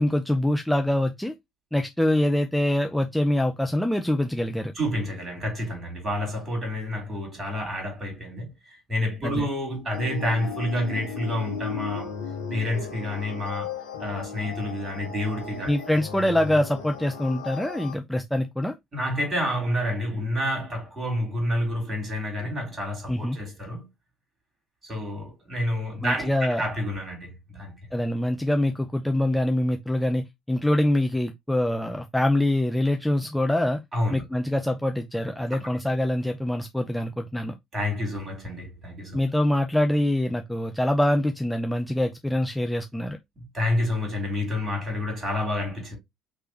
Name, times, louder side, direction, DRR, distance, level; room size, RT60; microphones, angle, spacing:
voice 1, 0.0-1.3 1.7-4.7 9.2-9.5 15.7-18.7 23.1-23.4 26.0-26.6 27.9-33.8 34.1-37.5 39.1-43.2, left 1 dB, 5° left, 0.6 m, -24 dB
voice 2, 4.7-8.5 8.9-12.1 12.5-13.7 14.0-15.7 18.9-23.9 24.8-27.7 33.9-34.2 37.7-39.2 43.4-46.0, left 1 dB, 30° right, 3.7 m, -29 dB
sound 1, 9.9-17.9, left 6 dB, 75° left, 1.0 m, -36 dB
5.2 x 3.3 x 2.9 m
figure-of-eight pair, 55°, 0 cm